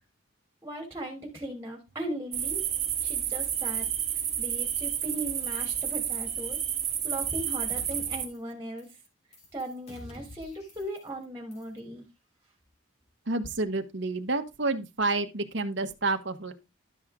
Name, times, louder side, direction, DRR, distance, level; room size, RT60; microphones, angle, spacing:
voice 1, 0.6-2.7 3.0-6.6 7.0-8.9 9.5-12.0, right 1 dB, 15° right, 3.2 m, -38 dB
sound 1, 2.3-8.3, right 9 dB, 35° right, 1.9 m, -30 dB
sound 2, 7.1-7.4 7.7-8.5 8.8-9.1 9.3-11.2 11.5-11.8, left 2 dB, 30° left, 3.6 m, -49 dB
voice 2, 13.3-16.5, right 3 dB, 60° right, 1.4 m, -29 dB
12.5 x 6.3 x 3.7 m
head